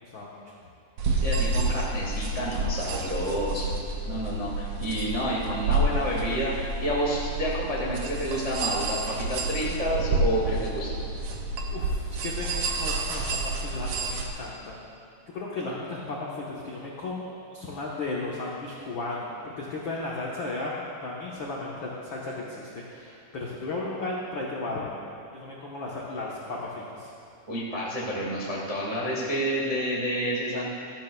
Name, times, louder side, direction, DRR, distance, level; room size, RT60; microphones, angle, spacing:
voice 1, 0.0-0.4 11.7-14.8 15.3-24.9 25.3-27.1, left 2 dB, 80° left, -5 dB, 1.1 m, -35 dB
sound 1, 1.0-14.3, right 2 dB, 80° right, 1.4 m, -29 dB
voice 2, 1.2-10.9 27.5-30.7, equal, 45° right, -5 dB, 0.4 m, -29 dB
16.5 x 13.0 x 2.3 m, 2.5 s
omnidirectional pair, 4.0 m